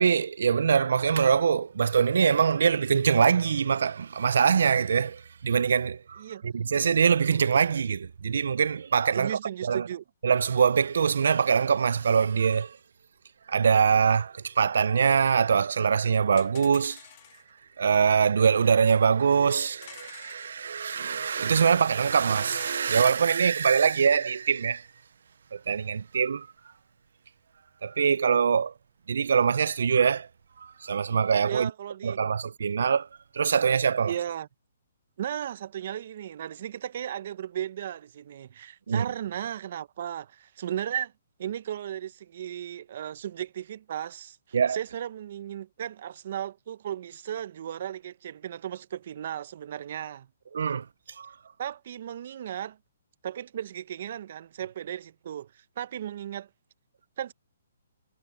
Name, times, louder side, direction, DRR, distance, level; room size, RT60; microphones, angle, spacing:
voice 1, 0.0-9.9 10.2-12.8 13.5-17.0 17.8-24.9 25.5-26.5 27.8-28.7 29.1-30.3 30.6-31.7 32.0-33.1 33.3-34.1 38.9-39.1 44.5-44.8 50.5-50.9 51.2-51.3, right 6 dB, 70° right, 0.6 m, -23 dB
voice 2, 9.1-10.0 31.5-32.2 34.0-34.5 35.2-41.1 41.4-50.3 51.6-52.8 53.2-56.5 57.2-57.3, right 10 dB, 55° right, 1.0 m, -35 dB
sound 1, 14.4-14.5 14.6-14.7 14.9-15.0 15.5-15.6 15.8-15.9 16.4-17.5 18.4-18.5 18.8-18.9 19.3-20.5 21.6-21.7 21.9-22.8, left 18 dB, 40° left, 1.8 m, -49 dB
hypercardioid pair, 145°, 0 cm